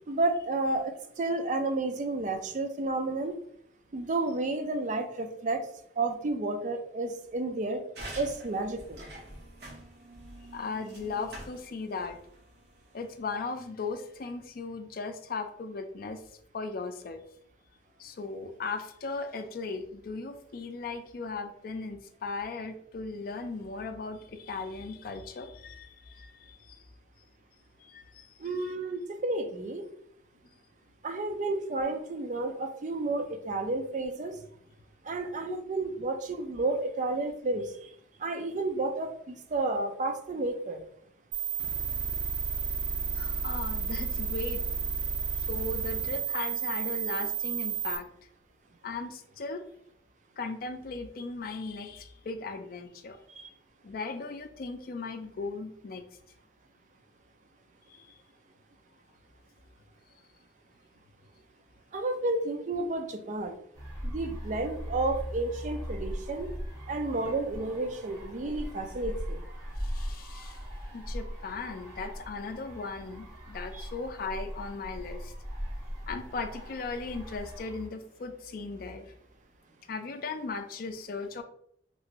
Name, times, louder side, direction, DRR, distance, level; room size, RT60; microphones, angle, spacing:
voice 1, 0.1-3.4 3.9-5.6 6.0-7.8 8.1-9.0 28.4-29.8 31.0-34.4 35.0-37.9 38.2-40.8 53.4-53.5 61.9-63.6 64.0-66.5 66.9-69.4 73.7-73.9, right 2 dB, 45° right, 6 dB, 0.4 m, -31 dB
sound 1, 7.9-13.2, right 1 dB, 65° right, 0.9 m, -46 dB
voice 2, 10.5-12.2 12.9-16.2 16.5-17.2 18.0-26.8 27.8-28.3 28.6-28.7 35.5-35.6 43.1-44.7 45.4-48.1 48.8-49.6 50.4-53.2 53.8-56.0 57.9-58.2 69.8-70.6 70.9-75.3 76.1-79.1 79.9-81.4, left 4 dB, 55° left, 7 dB, 0.4 m, -37 dB
sound 2, 41.3-48.0, right 6 dB, 85° right, 1.0 m, -32 dB
sound 3, 63.7-77.9, equal, 15° right, 1.2 m, -39 dB
3.0 x 2.5 x 2.9 m, 0.67 s
head